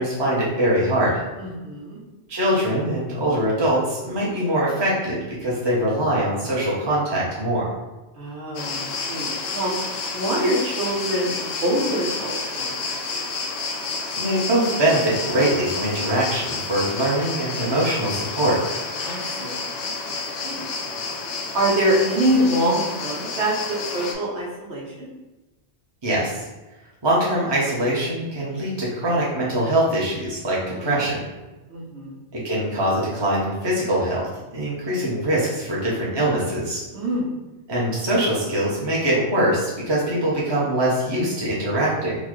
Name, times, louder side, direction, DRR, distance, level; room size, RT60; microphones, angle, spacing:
voice 1, 0.0-1.2 2.3-7.6 14.2-18.6 26.0-26.4 27.0-31.2 32.3-34.3 34.5-36.8 37.7-42.2, right 1 dB, 25° right, -6 dB, 0.8 m, -22 dB
voice 2, 1.4-2.0 8.2-9.7 10.1-13.2 19.0-21.0 21.5-25.1 30.7-31.0 31.7-32.2 36.9-37.4, right 1 dB, 70° right, -4 dB, 1.1 m, -25 dB
sound 1, 8.5-24.1, left 4 dB, 85° left, 0.9 m, -30 dB
4.0 x 2.3 x 3.1 m, 1.1 s
omnidirectional pair, 1.2 m